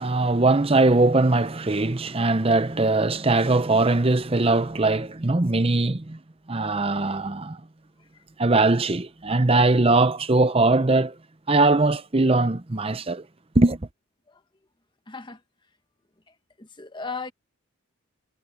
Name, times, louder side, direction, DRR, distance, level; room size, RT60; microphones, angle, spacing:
voice 1, 0.0-6.2 6.5-7.6 8.4-11.1 11.5-13.2 13.5-13.8, right 2 dB, 25° right, 0.7 m, -21 dB
voice 2, 15.1-15.4 16.6-17.3, left 4 dB, 20° left, 1.1 m, -36 dB
head